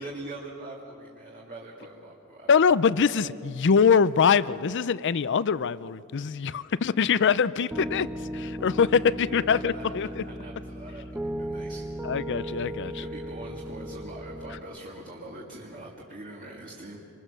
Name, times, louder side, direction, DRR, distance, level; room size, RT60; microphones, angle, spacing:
voice 1, 0.0-2.7 9.3-11.8 12.9-17.0, right 2 dB, 40° right, -3 dB, 2.2 m, -43 dB
voice 2, 2.5-10.2 12.0-12.9, left 6 dB, 55° left, 17 dB, 0.5 m, -23 dB
Piano, 7.7-14.6, right 1 dB, 10° right, 0.8 m, -36 dB
27.0 x 22.0 x 6.7 m, 2.7 s
head